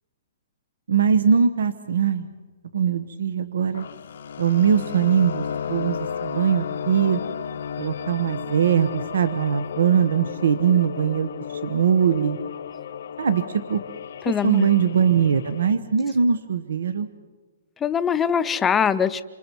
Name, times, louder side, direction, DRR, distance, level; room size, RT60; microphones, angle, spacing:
voice 1, 0.9-2.3 2.7-3.8 4.4-7.2 7.8-11.3 11.6-12.4 13.2-13.8 14.2-17.1, right 7 dB, 85° right, 11 dB, 1.2 m, -21 dB
sound 1, 3.7-15.7, left 8 dB, 65° left, 0.9 m, -33 dB
voice 2, 14.3-14.7 17.8-19.2, left 7 dB, 10° left, 13 dB, 0.6 m, -22 dB
28.5 x 26.0 x 4.6 m, 1.4 s
hypercardioid pair, 165°, 0 cm